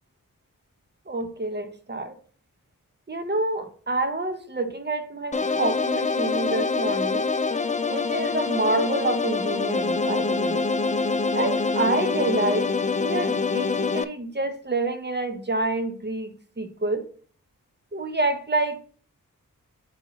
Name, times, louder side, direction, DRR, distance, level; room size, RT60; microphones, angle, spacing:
voice 1, 1.1-2.2 3.1-7.3 7.9-10.6 11.3-12.7 13.0-17.1 17.9-18.8, right 2 dB, 30° right, 0.9 m, -28 dB
sound 1, 5.3-14.0, left 4 dB, 25° left, 0.4 m, -25 dB
5.5 x 4.6 x 4.0 m
wide cardioid pair, 70°, 33 cm